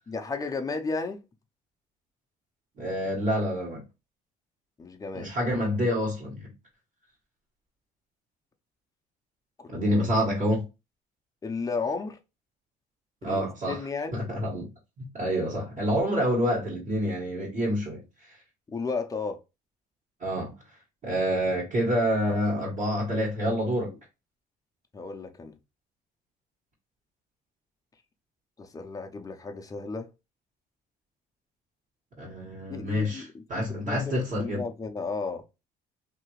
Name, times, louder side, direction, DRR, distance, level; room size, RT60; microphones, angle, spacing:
voice 1, 0.1-1.2 4.8-5.3 9.6-9.9 11.4-12.2 13.2-14.2 18.7-19.4 24.9-25.5 28.6-30.1 32.7-35.4, left 4 dB, 20° left, 0.6 m, -34 dB
voice 2, 2.8-3.8 5.1-6.5 9.7-10.6 13.2-13.8 14.1-14.7 15.0-18.3 20.2-20.5 21.0-23.9 32.2-34.6, equal, 45° right, 1.6 m, -27 dB
2.8 x 2.6 x 3.0 m
cardioid pair, 110°, 17 cm